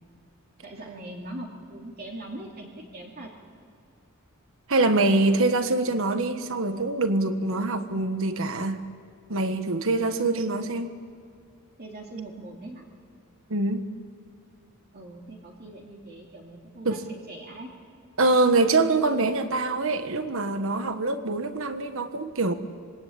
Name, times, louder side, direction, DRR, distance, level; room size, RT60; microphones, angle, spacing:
voice 1, 0.6-3.3 10.0-10.2 11.8-12.9 14.9-17.0 17.3-17.7, right 1 dB, 45° right, -1 dB, 2.8 m, -41 dB
voice 2, 4.7-8.8 9.3-10.9 13.5-13.9 16.8-17.1 18.2-22.5, right 2 dB, 65° right, 9 dB, 1.4 m, -24 dB
26.5 x 22.5 x 8.8 m, 2.4 s
head